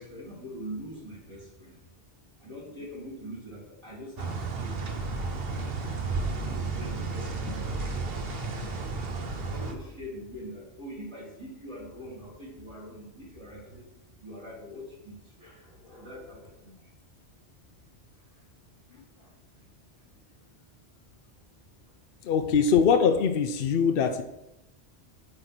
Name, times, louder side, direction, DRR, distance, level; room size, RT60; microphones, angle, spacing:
voice 1, 0.0-1.8 2.4-4.9 5.2-6.0 6.4-8.2 9.4-13.9 14.2-16.9 17.6-17.7 18.3-18.4 18.9-19.3, equal, 25° right, -6 dB, 2.3 m, -44 dB
sound 1, 4.2-9.7, right 3 dB, 65° right, 1.2 m, -32 dB
voice 2, 22.2-24.2, left 6 dB, 60° left, 7 dB, 0.8 m, -22 dB
8.7 x 3.9 x 5.8 m, 0.89 s
omnidirectional pair, 1.1 m